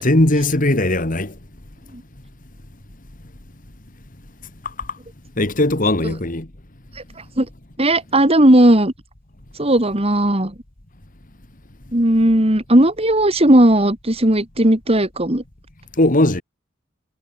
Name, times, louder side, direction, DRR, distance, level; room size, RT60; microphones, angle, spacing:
voice 1, 0.0-1.3 5.4-6.5 16.0-16.4, left 1 dB, 40° left, 2.1 m, -18 dB
voice 2, 7.8-8.9 9.6-10.5 11.9-15.4, right 1 dB, 30° right, 2.6 m, -15 dB
head